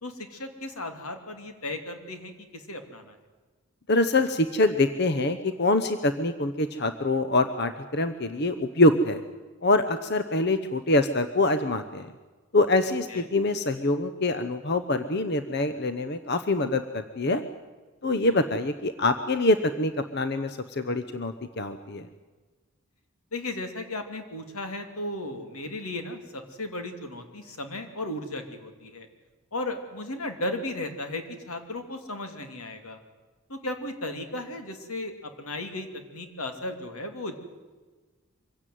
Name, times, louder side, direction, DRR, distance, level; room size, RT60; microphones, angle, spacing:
voice 1, 0.0-3.2 13.1-13.3 18.0-18.5 23.3-29.1 29.5-33.0 33.5-37.4, left 2 dB, 85° left, 6 dB, 2.8 m, -35 dB
voice 2, 3.9-9.2 9.6-12.1 12.5-17.4 18.0-22.1, left 2 dB, 50° left, 10 dB, 0.9 m, -25 dB
24.0 x 16.5 x 9.4 m, 1.3 s
head